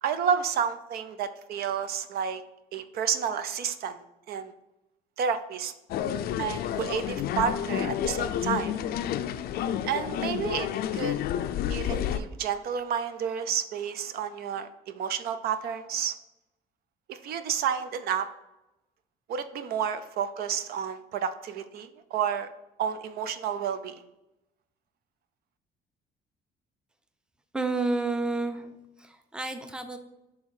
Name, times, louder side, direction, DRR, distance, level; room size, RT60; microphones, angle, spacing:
voice 1, 0.0-2.4 2.7-4.5 5.2-5.7 6.4-8.7 9.8-11.2 11.7-16.1 17.1-18.3 19.3-22.5 22.8-24.0, right 7 dB, 65° right, 11 dB, 0.5 m, -30 dB
sound 1, 5.9-12.2, left 10 dB, 65° left, 0.4 m, -30 dB
voice 2, 27.5-28.7 29.0-30.0, right 3 dB, 5° right, 8 dB, 0.6 m, -30 dB
6.2 x 3.5 x 4.8 m, 0.94 s
cardioid pair, 110°, 17 cm